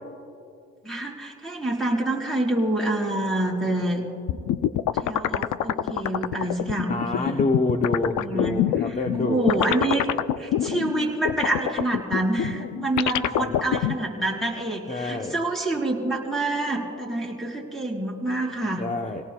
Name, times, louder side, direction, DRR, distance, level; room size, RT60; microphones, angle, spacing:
voice 1, 0.8-4.0 5.0-7.4 8.2-8.6 8.8-10.1 10.4-18.9, right 1 dB, ahead, -2 dB, 4.4 m, -27 dB
sound 1, 4.3-14.0, left 11 dB, 75° left, 0.6 m, -25 dB
voice 2, 6.9-9.5 13.4-13.6 14.9-15.4 18.8-19.2, left 2 dB, 25° left, 5 dB, 0.9 m, -27 dB
29.5 x 18.0 x 2.3 m, 2.6 s
cardioid pair, 90°, 30 cm